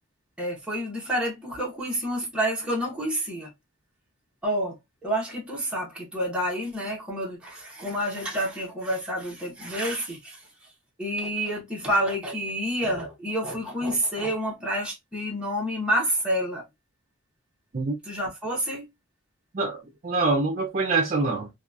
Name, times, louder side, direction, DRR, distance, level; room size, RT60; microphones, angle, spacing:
voice 1, 0.4-3.5 4.4-4.7 5.0-10.4 11.0-16.6 18.0-18.8, equal, 5° right, 0.8 m, -28 dB
voice 2, 19.5-21.5, right 3 dB, 40° right, 0.5 m, -25 dB
2.8 x 2.3 x 2.3 m
head